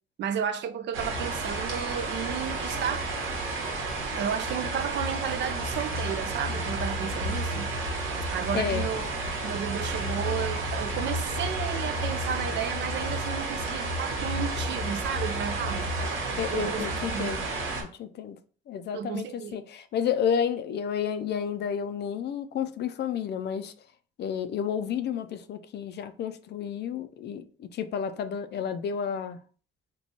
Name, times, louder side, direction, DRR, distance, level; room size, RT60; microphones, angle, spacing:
voice 1, 0.2-3.1 4.1-7.7 8.3-9.0 9.4-15.9 16.5-16.9 17.1-17.3 18.9-19.6, right 8 dB, 65° right, 0.4 m, -33 dB
sound 1, 0.9-17.8, right 2 dB, 80° right, 1.0 m, -31 dB
voice 2, 8.5-8.9 16.4-17.5 17.8-18.4 18.7-23.7 24.2-29.4, left 8 dB, 60° left, 0.4 m, -31 dB
2.9 x 2.2 x 4.1 m
cardioid pair, 90°, 20 cm